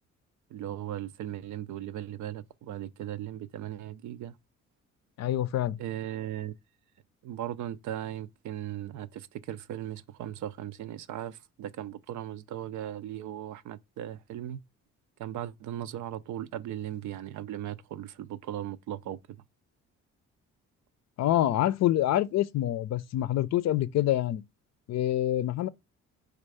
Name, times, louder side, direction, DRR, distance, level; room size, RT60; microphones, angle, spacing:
voice 1, 0.5-4.4 5.8-6.5 7.2-14.6 15.2-19.4, right 11 dB, 75° right, 0.5 m, -37 dB
voice 2, 5.2-5.8 21.2-24.4 24.9-25.7, left 13 dB, 60° left, 0.5 m, -26 dB
4.4 x 2.4 x 4.7 m
cardioid pair, 90°, 30 cm